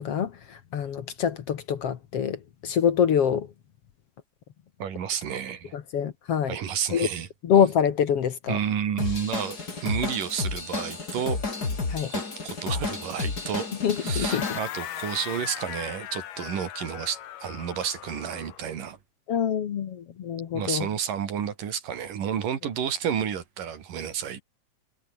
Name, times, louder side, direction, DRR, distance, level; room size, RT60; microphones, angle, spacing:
voice 1, 0.0-3.5 5.7-6.6 6.9-7.1 7.4-8.6 11.9-12.1 13.8-14.5 19.3-20.9, left 8 dB, 55° left, 2.1 m, -25 dB
voice 2, 4.8-5.8 6.5-7.3 8.5-11.4 12.1-13.7 14.0-19.0 20.5-24.4, right 8 dB, 85° right, 4.2 m, -31 dB
Drum kit / Drum, 9.0-14.6, left 4 dB, 30° left, 3.8 m, -31 dB
sound 1, 14.3-18.7, left 12 dB, 85° left, 3.1 m, -38 dB
omnidirectional pair, 3.7 m